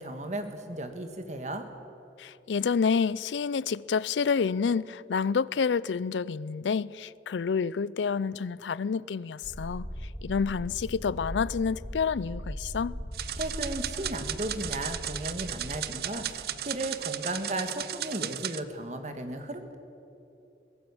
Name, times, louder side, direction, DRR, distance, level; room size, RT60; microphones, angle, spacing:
voice 1, 0.0-1.6 13.4-19.8, right 1 dB, 40° right, 1.7 m, -35 dB
voice 2, 2.2-9.9 10.2-13.0, left 5 dB, 85° left, 0.4 m, -28 dB
sound 1, 9.4-17.0, equal, 10° right, 4.9 m, -40 dB
sound 2, 13.1-18.6, right 11 dB, 55° right, 0.6 m, -35 dB
23.0 x 17.0 x 7.1 m
head